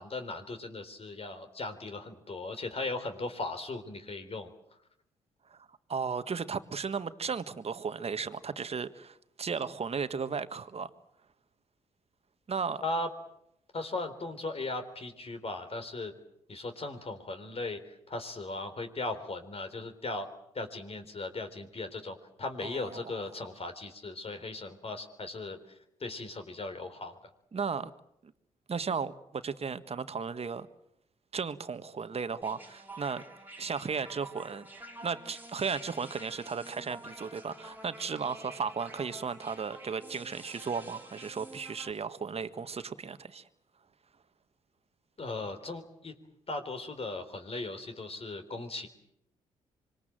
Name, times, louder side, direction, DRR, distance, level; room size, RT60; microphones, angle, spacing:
voice 1, 0.0-4.5 12.8-13.1 13.7-16.1 16.5-20.3 20.5-25.6 26.0-27.2 45.2-46.2 46.5-48.9, left 2 dB, 40° left, 7 dB, 3.9 m, -38 dB
voice 2, 5.9-10.9 12.5-12.8 22.6-23.0 27.5-27.9 28.2-28.3 28.7-30.7 31.3-33.2 33.6-34.7 35.0-43.4, right 5 dB, 40° right, 12 dB, 1.6 m, -35 dB
sound 1, 32.4-41.9, right 1 dB, 10° right, 3.1 m, -49 dB
25.5 x 23.0 x 7.7 m, 0.77 s
hypercardioid pair, 45°, 15 cm